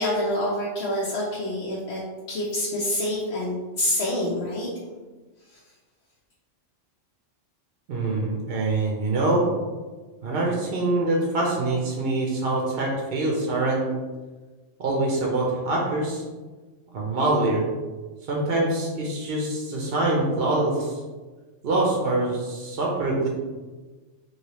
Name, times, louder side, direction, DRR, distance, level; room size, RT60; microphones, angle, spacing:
voice 1, 0.0-2.0 2.3-4.7 5.5-5.6, left 1 dB, 60° left, -5 dB, 0.8 m, -27 dB
voice 2, 7.9-9.5 10.2-13.9 14.8-16.2 16.9-17.6 18.3-21.0 21.6-23.3, right 2 dB, 55° right, -2 dB, 0.8 m, -24 dB
3.1 x 2.7 x 2.9 m, 1.3 s
omnidirectional pair, 1.3 m